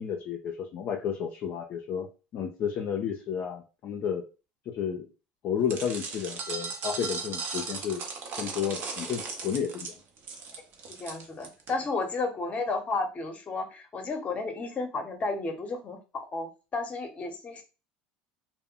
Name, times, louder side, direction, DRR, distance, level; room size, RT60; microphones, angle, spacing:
voice 1, 0.0-2.1 2.3-4.2 4.7-5.1 5.4-8.0 8.4-9.9, left 8 dB, 50° left, 0 dB, 0.4 m, -32 dB
sound 1, 5.7-11.7, right 4 dB, 55° right, 0.7 m, -37 dB
voice 2, 10.9-17.6, left 3 dB, 30° left, 6 dB, 0.8 m, -33 dB
2.1 x 2.0 x 3.6 m, 0.31 s
supercardioid pair, 90°, 4 cm